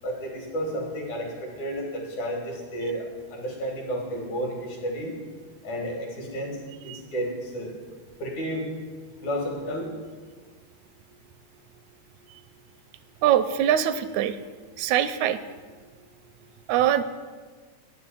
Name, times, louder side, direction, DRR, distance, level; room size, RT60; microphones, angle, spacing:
voice 1, 0.0-3.0 3.3-5.1 5.6-6.6 6.8-7.7 8.2-8.6 9.2-9.9, equal, 80° left, 0 dB, 3.8 m, -31 dB
voice 2, 13.2-14.4 14.8-15.4 16.7-17.0, right 10 dB, 85° right, 11 dB, 1.9 m, -22 dB
9.6 x 6.8 x 8.8 m, 1.5 s
omnidirectional pair, 3.3 m